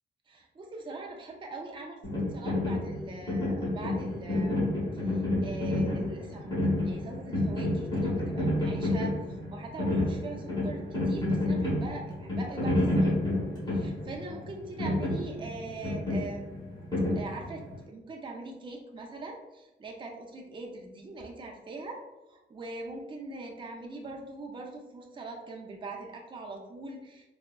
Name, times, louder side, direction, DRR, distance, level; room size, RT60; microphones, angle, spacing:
voice 1, 0.3-4.6 5.0-6.5 6.8-9.2 9.5-13.1 13.7-16.8 17.1-27.3, right 2 dB, 25° right, 1 dB, 0.4 m, -42 dB
sound 1, 2.0-17.8, left 1 dB, 20° left, 0.9 m, -30 dB
3.4 x 2.0 x 2.2 m, 0.99 s
wide cardioid pair, 165°, 20 cm